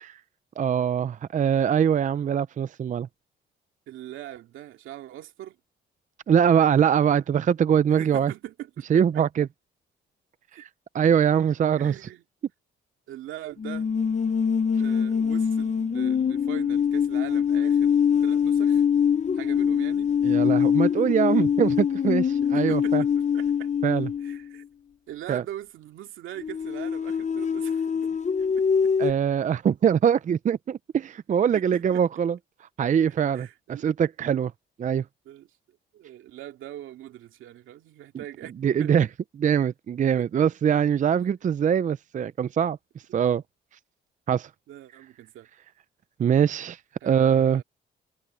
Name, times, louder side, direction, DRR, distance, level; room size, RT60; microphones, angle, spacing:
voice 1, 0.6-3.1 6.3-8.3 8.9-9.5 10.5-10.7 10.9-12.0 20.2-23.0 23.8-24.1 25.3-25.4 29.0-32.4 32.8-34.5 34.8-35.0 38.1-38.2 38.6-39.1 39.4-42.8 43.1-43.4 44.3-44.5 46.2-47.6, right 8 dB, 40° right, 0.5 m, -23 dB
voice 2, 3.9-5.6 7.9-9.2 10.5-10.6 11.8-12.2 13.1-13.9 14.8-18.0 18.2-18.8 19.3-20.1 22.5-23.7 24.2-24.6 25.1-28.1 28.6-28.7 31.5-32.0 33.1-33.9 35.3-35.5 35.9-39.0 40.2-40.3 44.7-45.5 47.0-47.6, right 13 dB, 85° right, 2.5 m, -41 dB
sound 1, 13.6-24.6 26.4-29.1, left 7 dB, 35° left, 1.0 m, -24 dB
cardioid pair, 90°, 20 cm